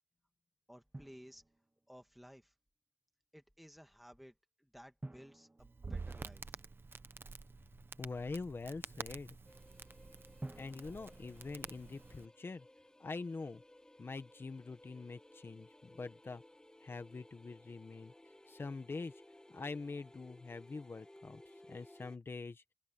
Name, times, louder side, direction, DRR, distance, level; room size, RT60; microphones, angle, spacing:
voice 1, 0.7-1.4 1.9-2.5 3.3-6.6, equal, ahead, 2.5 m, -57 dB
Drum, 0.9-2.0 5.0-6.9 10.4-12.4, right 2 dB, 30° right, 0.8 m, -52 dB
Crackle, 5.6-12.3, right 4 dB, 70° right, 1.0 m, -49 dB
voice 2, 8.0-9.4 10.6-12.7 13.0-13.6 14.0-16.4 16.8-18.1 18.5-19.1 19.5-21.4 21.7-22.6, left 3 dB, 80° left, 1.5 m, -44 dB
sound 1, 9.5-22.2, left 1 dB, 20° left, 2.2 m, -60 dB
open air
wide cardioid pair, 60°, 4 cm